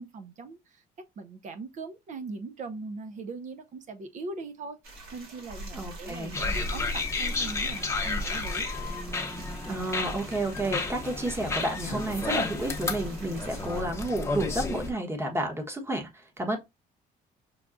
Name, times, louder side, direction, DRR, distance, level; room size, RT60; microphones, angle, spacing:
voice 1, 0.0-4.8 5.1-8.7, right 3 dB, 45° right, 0.6 m, -40 dB
sound 1, 4.8-13.8, equal, 60° right, 2.0 m, -41 dB
voice 2, 5.7-6.4 9.6-16.6, right 1 dB, 15° right, 1.1 m, -31 dB
sound 2, 6.3-14.9, left 3 dB, 15° left, 0.8 m, -32 dB
6.0 x 2.3 x 2.5 m
cardioid pair, 110°, 17 cm